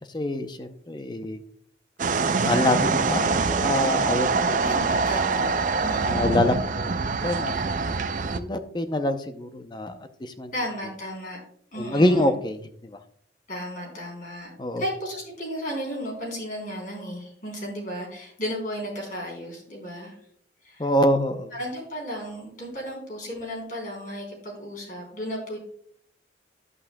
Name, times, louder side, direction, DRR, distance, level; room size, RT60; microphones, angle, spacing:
voice 1, 0.0-1.4 2.4-4.8 6.0-6.9 7.2-7.9 8.3-10.5 11.8-13.0 14.6-14.8 20.8-21.5, left 1 dB, 25° left, 8 dB, 0.6 m, -26 dB
sound 1, 2.0-8.4, right 4 dB, 45° right, 0.4 m, -24 dB
voice 2, 4.6-5.6 5.8-6.6 10.5-11.4 11.7-12.3 13.5-14.5 14.8-20.2 20.6-20.9 21.5-25.6, equal, 45° left, -2 dB, 3.5 m, -34 dB
11.0 x 8.4 x 2.2 m, 0.63 s
head